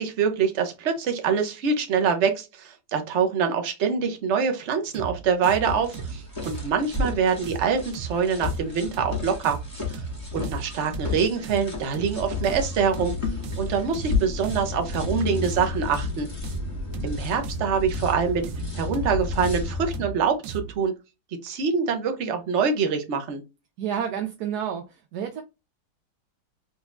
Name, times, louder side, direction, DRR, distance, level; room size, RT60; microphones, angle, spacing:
voice 1, 0.0-9.6 9.9-10.0 10.3-13.1 13.6-16.3 17.0-18.4 18.7-20.9 21.4-23.4, right 6 dB, 50° right, 1.0 m, -25 dB
sound 1, 4.9-20.8, right 6 dB, 85° right, 1.4 m, -37 dB
sound 2, 5.6-20.0, left 4 dB, 15° left, 1.8 m, -32 dB
voice 2, 23.8-25.4, right 8 dB, 70° right, 1.1 m, -30 dB
4.0 x 3.5 x 2.6 m
omnidirectional pair, 2.0 m